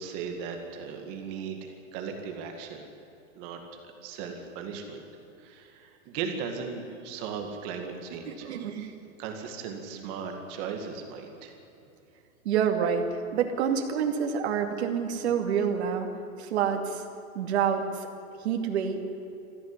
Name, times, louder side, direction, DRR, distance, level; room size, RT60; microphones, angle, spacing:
voice 1, 0.0-2.9 3.4-3.6 4.0-5.0 5.4-8.5 9.2-11.5, right 6 dB, 25° right, 4 dB, 2.1 m, -37 dB
voice 2, 8.3-8.9 12.4-13.1 13.3-16.1 16.4-17.0 17.3-17.8 18.4-19.0, right 7 dB, 50° right, 3 dB, 2.5 m, -27 dB
20.0 x 15.0 x 9.7 m, 2.8 s
supercardioid pair, 170°, 41 cm